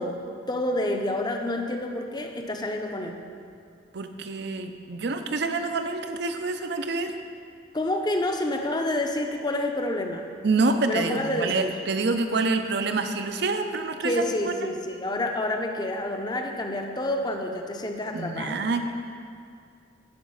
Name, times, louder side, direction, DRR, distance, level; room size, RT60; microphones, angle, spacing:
voice 1, 0.0-3.2 7.7-10.3 10.8-11.7 14.0-18.7, left 1 dB, 20° left, 3 dB, 0.7 m, -28 dB
voice 2, 3.9-7.1 10.4-14.7 18.1-18.9, right 3 dB, 60° right, 7 dB, 0.6 m, -27 dB
11.5 x 5.0 x 5.5 m, 2.3 s
head